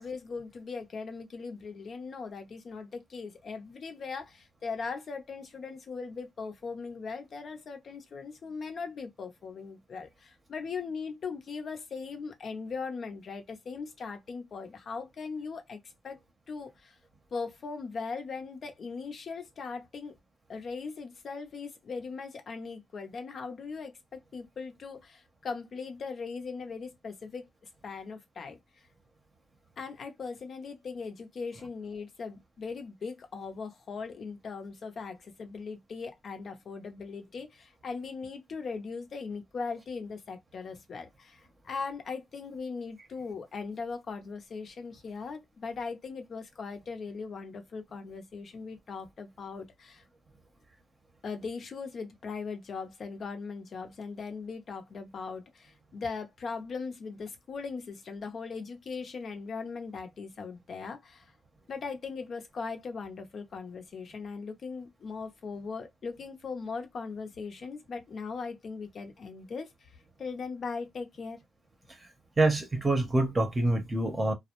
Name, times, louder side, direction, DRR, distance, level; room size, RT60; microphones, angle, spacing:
voice 1, 0.0-16.2 16.5-17.0 17.3-20.1 20.5-27.5 27.8-28.6 29.8-50.0 51.2-61.3 61.7-69.9 70.2-71.4, left 4 dB, 50° left, 0.7 m, -39 dB
voice 2, 72.4-74.3, right 2 dB, 25° right, 0.7 m, -26 dB
2.3 x 2.0 x 2.9 m
cardioid pair, 90°, 0 cm